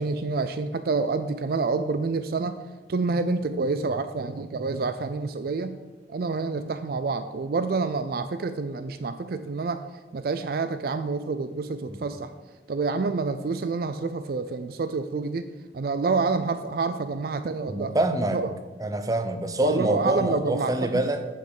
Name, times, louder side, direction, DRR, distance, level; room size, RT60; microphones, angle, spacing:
voice 1, 0.0-2.6 2.9-5.8 6.1-9.8 10.1-12.3 12.7-15.5 15.7-18.0 18.3-18.5 19.6-21.0, right 4 dB, 55° right, 11 dB, 0.4 m, -28 dB
voice 2, 17.7-18.4 18.8-21.3, right 1 dB, 20° right, 8 dB, 0.6 m, -26 dB
7.6 x 6.6 x 6.5 m, 1.3 s
head